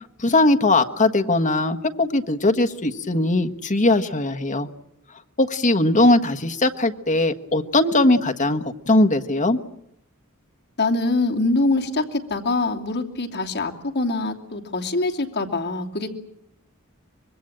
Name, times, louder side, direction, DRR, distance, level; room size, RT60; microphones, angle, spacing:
voice 1, 0.2-4.7 5.4-9.6, left 2 dB, 35° left, 1.4 m, -20 dB
voice 2, 10.8-16.1, left 2 dB, 55° left, 2.9 m, -24 dB
25.0 x 22.5 x 8.9 m
head